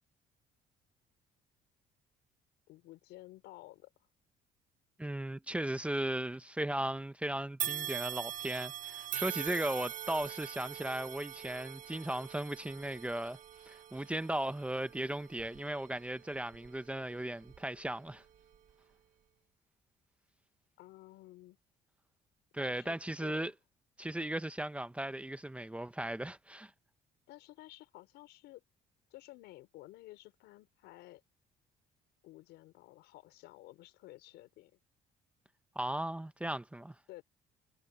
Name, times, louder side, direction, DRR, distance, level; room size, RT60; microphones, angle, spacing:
voice 1, 2.7-3.9 20.8-21.6 22.6-23.5 27.3-28.6 29.1-31.2 32.2-34.8 37.1-37.2, left 17 dB, 85° left, 6.1 m, -53 dB
voice 2, 5.0-13.4 13.7-18.2 22.5-23.5 24.0-26.7 35.7-36.9, right 1 dB, 5° right, 1.0 m, -37 dB
sound 1, 7.6-16.9 17.4-17.6 18.5-18.6, right 11 dB, 50° right, 1.2 m, -42 dB
cardioid pair, 110°, 17 cm